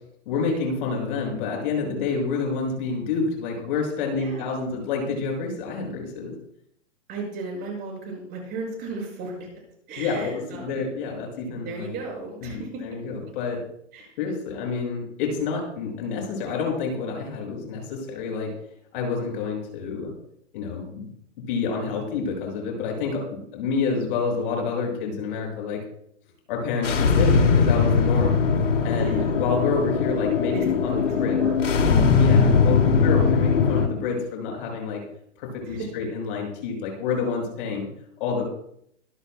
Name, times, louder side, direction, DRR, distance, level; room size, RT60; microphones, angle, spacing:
voice 1, 0.3-6.3 10.0-12.0 12.4-13.6 14.2-18.5 18.9-20.1 20.5-21.1 21.5-25.8 26.5-28.4 28.8-31.4 32.2-35.0 35.4-37.9 38.2-38.4, left 4 dB, 45° left, 0 dB, 6.4 m, -28 dB
voice 2, 7.1-9.5 9.9-10.8 11.6-12.7 13.9-14.1 29.0-29.3 30.5-31.8 32.3-32.6 35.6-35.9, right 3 dB, 25° right, -1 dB, 6.5 m, -35 dB
sound 1, 26.8-33.9, left 5 dB, 80° left, 2.6 m, -20 dB
24.5 x 12.5 x 2.3 m, 0.71 s
hypercardioid pair, 140°, 36 cm